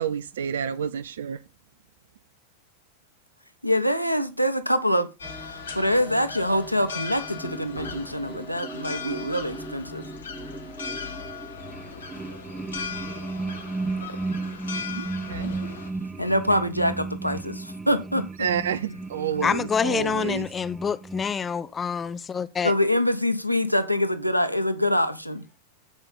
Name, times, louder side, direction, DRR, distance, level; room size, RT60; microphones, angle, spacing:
voice 1, 0.0-1.4 14.9-15.5 18.4-20.5, right 8 dB, 60° right, 0.5 m, -29 dB
voice 2, 3.6-10.0 16.2-18.3 22.6-25.4, left 1 dB, 90° right, 1.1 m, -25 dB
sound 1, 5.2-15.9, left 6 dB, 65° left, 1.7 m, -38 dB
sound 2, 5.2-21.3, right 3 dB, 10° right, 0.9 m, -36 dB
voice 3, 19.4-22.7, left 6 dB, 20° left, 0.6 m, -27 dB
15.5 x 5.4 x 4.0 m
figure-of-eight pair, 90°, 0 cm